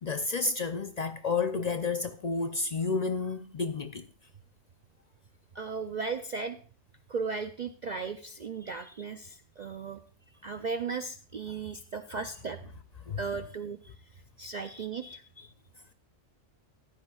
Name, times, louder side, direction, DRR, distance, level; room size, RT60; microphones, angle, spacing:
voice 1, 0.0-4.1 13.1-13.2 14.6-15.5, left 4 dB, 60° left, 0.4 m, -31 dB
voice 2, 5.5-6.6 7.1-10.0 10.4-12.6 13.2-13.9 14.4-15.2, right 5 dB, 60° right, 0.4 m, -36 dB
14.0 x 11.5 x 2.3 m
omnidirectional pair, 1.3 m